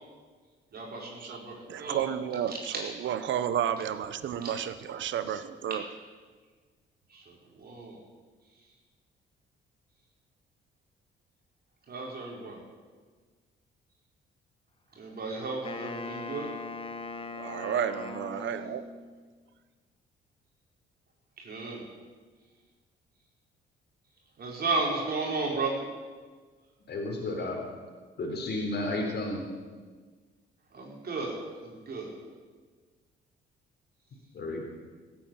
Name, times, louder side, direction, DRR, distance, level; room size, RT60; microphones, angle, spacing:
voice 1, 0.7-1.5 1.8-2.0 4.4-4.5 7.1-8.0 11.9-12.6 15.0-16.5 21.4-21.8 24.4-25.8 30.7-31.3 31.6-32.1, right 3 dB, 50° right, -2 dB, 4.8 m, -33 dB
voice 2, 1.2-5.8 17.4-18.8, right 9 dB, 70° right, 12 dB, 1.2 m, -32 dB
Wind instrument woodwind instrument, 15.6-19.1, left 3 dB, 25° left, 1.6 m, -40 dB
voice 3, 26.9-27.6 28.2-29.4 34.3-34.7, left 2 dB, 55° left, 0 dB, 4.0 m, -32 dB
16.5 x 9.4 x 9.0 m, 1.5 s
cardioid pair, 90°, 20 cm